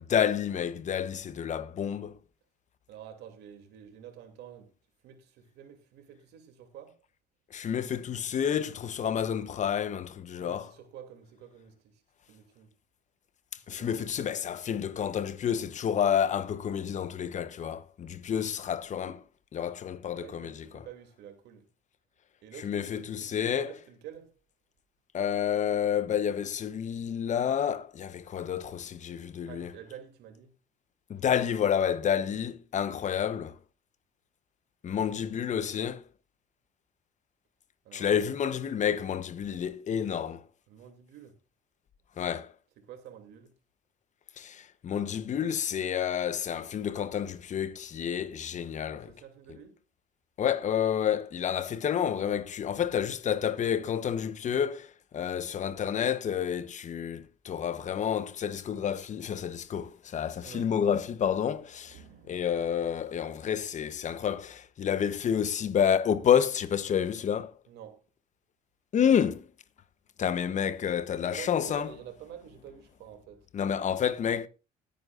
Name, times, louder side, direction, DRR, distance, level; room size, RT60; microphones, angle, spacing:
voice 1, 0.0-2.2 7.5-10.7 13.7-19.2 19.5-20.8 22.6-23.7 25.1-29.7 31.1-33.6 34.8-36.0 37.9-40.4 42.2-42.5 44.4-49.1 50.4-62.0 62.3-67.5 68.9-69.5 70.2-71.9 73.5-74.5, left 8 dB, 45° left, 1.0 m, -29 dB
voice 2, 2.9-4.7 5.0-7.0 10.4-12.0 12.3-12.7 13.6-14.1 20.1-21.6 22.4-24.3 29.5-30.5 37.8-38.1 40.7-41.3 42.8-43.5 48.9-49.8 60.4-60.7 61.9-62.4 67.7-68.0 71.2-73.5, right 9 dB, 85° right, 2.8 m, -48 dB
19.5 x 9.4 x 2.5 m
cardioid pair, 110°, 17 cm